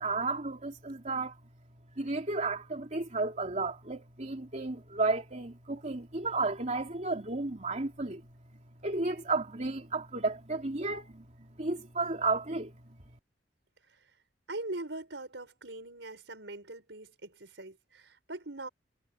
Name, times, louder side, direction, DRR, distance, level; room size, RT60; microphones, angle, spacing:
voice 1, 0.0-1.3 2.0-8.2 8.8-11.2 11.6-12.7, right 3 dB, 40° right, 3.0 m, -32 dB
voice 2, 14.5-18.7, right 2 dB, 75° right, 5.6 m, -41 dB
head